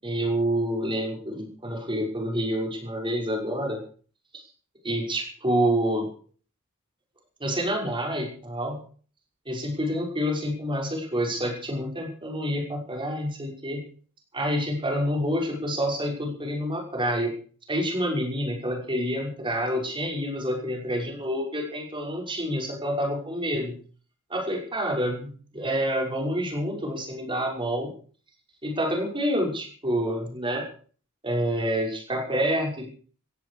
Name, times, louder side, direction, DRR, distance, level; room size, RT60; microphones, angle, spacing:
voice 1, 0.0-3.8 4.8-6.1 7.4-8.8 9.5-13.8 14.3-17.3 17.7-23.8 24.3-27.9 28.6-30.6 31.2-32.9, equal, 25° right, 0 dB, 5.7 m, -28 dB
16.0 x 16.0 x 4.9 m, 0.43 s
head